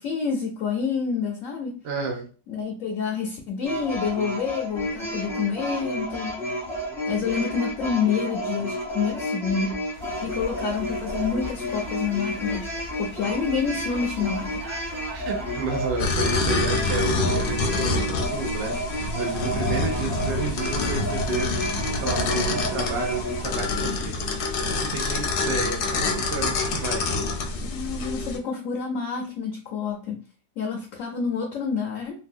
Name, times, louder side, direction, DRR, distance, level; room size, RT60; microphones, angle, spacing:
voice 1, 0.0-1.8 2.5-6.6 7.1-9.8 10.2-12.7 13.0-14.6 27.7-30.2 30.6-32.3, left 6 dB, 65° left, 0.9 m, -28 dB
voice 2, 1.8-2.3 15.1-27.2, right 4 dB, 65° right, 0.6 m, -31 dB
sound 1, 3.6-23.5, equal, ahead, 0.6 m, -31 dB
sound 2, 9.9-16.3, equal, 90° right, 1.3 m, -40 dB
sound 3, 16.0-28.4, left 3 dB, 85° left, 1.2 m, -27 dB
3.3 x 2.3 x 2.6 m
omnidirectional pair, 1.7 m